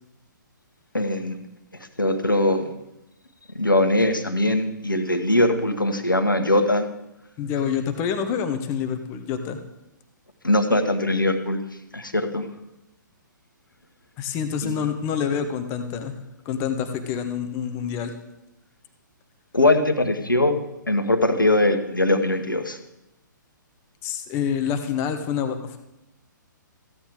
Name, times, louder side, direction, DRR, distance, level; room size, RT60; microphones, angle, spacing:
voice 1, 0.9-1.4 2.0-2.6 3.6-6.9 10.4-11.6 11.9-12.4 14.6-14.8 19.5-20.5 20.9-22.8, left 1 dB, 85° left, 7 dB, 1.1 m, -21 dB
voice 2, 7.4-9.6 14.2-16.2 16.4-18.1 24.0-25.8, left 7 dB, 25° left, 8 dB, 0.7 m, -27 dB
14.5 x 9.1 x 3.6 m, 0.92 s
figure-of-eight pair, 125°, 11 cm